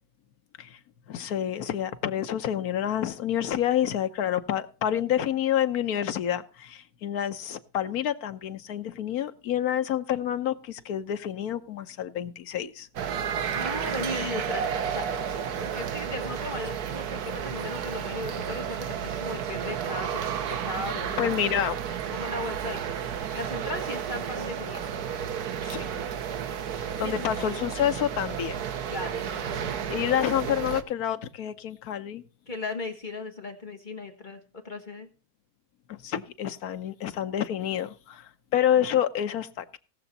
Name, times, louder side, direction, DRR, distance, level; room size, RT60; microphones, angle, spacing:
voice 1, 1.1-12.9 13.3-13.4 21.2-21.8 25.6-26.0 27.0-28.6 29.9-32.2 35.9-39.8, left 10 dB, 80° left, 10 dB, 1.3 m, -28 dB
sound 1, 13.0-30.8, right 8 dB, 80° right, 1.4 m, -32 dB
voice 2, 13.5-15.1 15.6-20.2 20.6-21.3 22.1-25.4 27.0-27.3 28.9-29.8 32.5-35.1, left 2 dB, 35° left, 3 dB, 1.5 m, -37 dB
18.0 x 6.9 x 4.1 m, 0.35 s
omnidirectional pair, 1.6 m